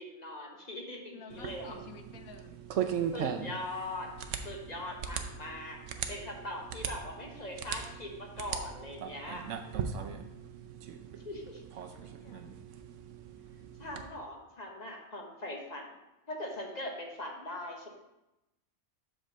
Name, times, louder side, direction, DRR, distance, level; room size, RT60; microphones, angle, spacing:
voice 1, 0.0-1.8 3.1-4.1 4.4-5.8 6.1-9.4 11.2-11.6 13.8-15.9 16.3-17.9, left 1 dB, 30° left, 1 dB, 1.1 m, -41 dB
voice 2, 1.1-2.6 3.2-3.6 5.9-6.0 11.9-12.4, left 4 dB, 75° left, 6 dB, 1.3 m, -51 dB
sound 1, 1.3-14.1, right 8 dB, 65° right, 0.9 m, -39 dB
7.7 x 3.8 x 6.3 m, 0.94 s
omnidirectional pair, 1.5 m